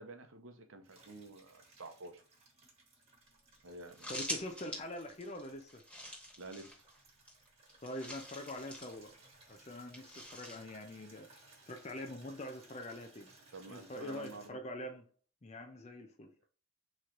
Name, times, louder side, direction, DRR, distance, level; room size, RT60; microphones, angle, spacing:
voice 1, 0.0-2.2 3.6-4.1 6.4-6.8 13.5-14.6, right 2 dB, 65° right, 0.7 m, -50 dB
Water tap faucet / Liquid, 0.8-14.5, right 2 dB, 30° right, 1.3 m, -62 dB
sound 1, 3.3-3.4 3.5-3.6 3.8-7.0 7.3-9.0 9.9-10.6, equal, 5° left, 1.1 m, -45 dB
voice 2, 4.1-5.8 7.8-9.1 9.5-11.4 11.7-13.3 13.7-15.0 15.4-16.5, left 1 dB, 30° left, 0.5 m, -44 dB
3.8 x 3.1 x 4.4 m
head